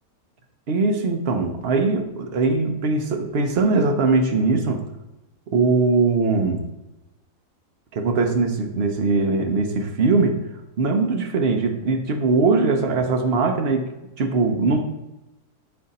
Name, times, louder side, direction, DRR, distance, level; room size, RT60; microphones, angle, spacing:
voice 1, 0.7-4.8 5.5-6.7 7.9-10.4 10.8-13.9 14.2-14.8, right 3 dB, 50° right, 5 dB, 0.8 m, -21 dB
8.8 x 3.8 x 4.1 m, 0.97 s
omnidirectional pair, 1.7 m